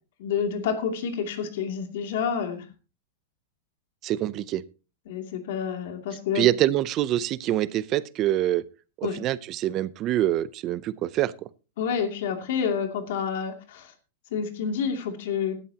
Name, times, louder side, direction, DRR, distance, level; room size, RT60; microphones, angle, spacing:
voice 1, 0.2-2.7 5.1-6.5 9.0-9.2 11.8-13.9 14.3-15.5, left 7 dB, 55° left, 2.6 m, -28 dB
voice 2, 4.0-4.6 6.3-8.6 9.0-11.3, right 13 dB, 25° right, 0.5 m, -25 dB
16.0 x 12.5 x 2.9 m
supercardioid pair, 170°, 0 cm